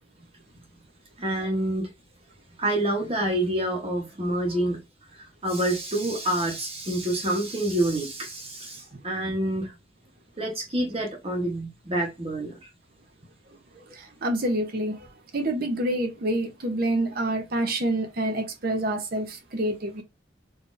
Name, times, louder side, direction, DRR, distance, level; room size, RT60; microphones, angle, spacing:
voice 1, 1.2-1.9 2.6-4.8 5.1-9.7 10.4-12.7 13.7-13.8, right 1 dB, 30° right, 1.1 m, -27 dB
voice 2, 13.9-15.1 15.3-20.0, right 1 dB, 55° right, 0.8 m, -27 dB
3.8 x 2.8 x 2.6 m
head